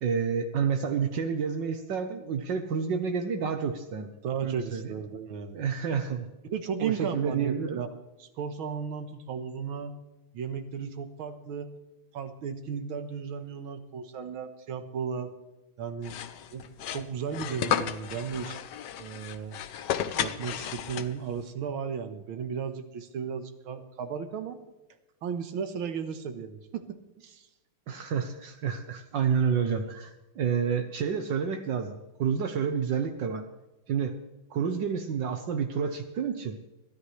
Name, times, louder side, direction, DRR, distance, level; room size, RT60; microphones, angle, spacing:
voice 1, 0.0-4.1 4.4-4.9 5.5-6.3 6.8-7.8 27.9-33.5 33.9-34.2 34.5-36.6, right 6 dB, 65° right, 7 dB, 1.5 m, -29 dB
voice 2, 4.2-5.6 6.4-7.9 8.2-10.0 10.3-11.7 12.1-15.3 15.8-16.2 16.5-16.7 16.9-18.6 19.0-19.6 20.2-24.6 25.2-27.5, right 6 dB, 90° right, 8 dB, 2.0 m, -35 dB
sound 1, 16.0-21.4, left 9 dB, 65° left, 1.2 m, -33 dB
22.0 x 13.5 x 3.2 m, 1.0 s
omnidirectional pair, 2.2 m